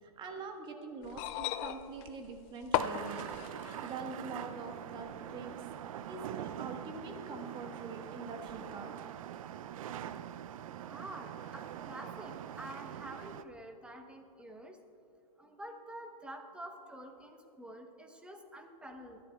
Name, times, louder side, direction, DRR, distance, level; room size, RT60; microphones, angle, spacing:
voice 1, 0.0-3.3 3.8-5.7 6.1-8.9, right 3 dB, 25° right, 4 dB, 1.4 m, -44 dB
sound 1, 1.0-4.0 5.1-5.2, left 11 dB, 30° left, 0.4 m, -36 dB
sound 2, 2.7-13.4, right 10 dB, 60° right, 0.5 m, -44 dB
voice 2, 10.9-14.8 15.4-19.2, right 1 dB, 5° right, 5 dB, 0.9 m, -48 dB
24.5 x 11.0 x 2.3 m, 2.7 s
hypercardioid pair, 135°, 19 cm